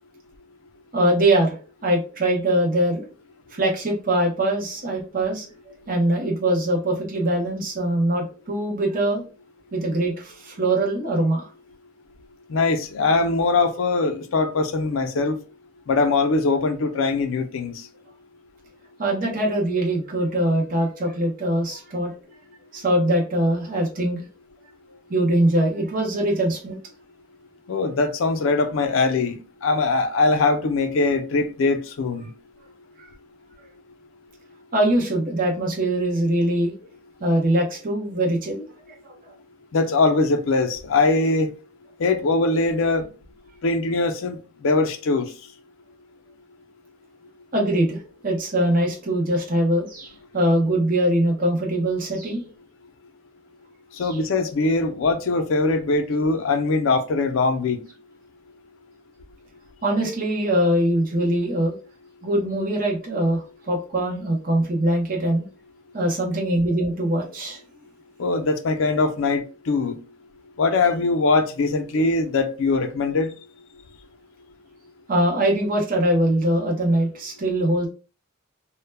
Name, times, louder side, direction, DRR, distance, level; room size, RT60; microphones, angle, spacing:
voice 1, 0.9-1.5 1.8-3.1 3.5-5.5 5.9-9.2 9.7-11.5 19.0-22.1 22.7-24.2 25.1-26.8 33.0-33.1 34.7-36.7 37.2-39.3 47.5-52.4 54.0-54.2 59.8-61.7 62.2-65.4 65.9-67.6 75.1-77.9, right 1 dB, 40° right, 0.6 m, -22 dB
voice 2, 12.5-15.4 15.9-17.7 27.7-32.3 39.7-41.5 42.0-43.1 43.6-44.4 44.6-45.3 54.0-57.8 68.2-70.0 70.6-73.3, left 3 dB, 75° left, 0.4 m, -21 dB
2.1 x 2.1 x 3.2 m
head